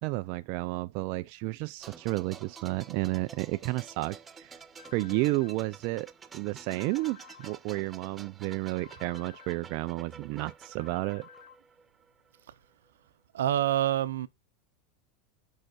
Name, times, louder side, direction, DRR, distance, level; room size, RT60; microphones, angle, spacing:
voice 1, 0.0-4.5 4.9-11.3, right 21 dB, 60° right, 0.4 m, -32 dB
sound 1, 1.8-12.4 12.7-12.9, right 6 dB, 20° right, 0.8 m, -50 dB
sound 2, 4.8-5.6 6.8-7.6 8.8-9.6 10.8-11.6, left 9 dB, 80° left, 1.0 m, -52 dB
voice 2, 13.3-14.3, right 12 dB, 85° right, 0.7 m, -26 dB
6.6 x 5.7 x 4.3 m
hypercardioid pair, 110°, 0 cm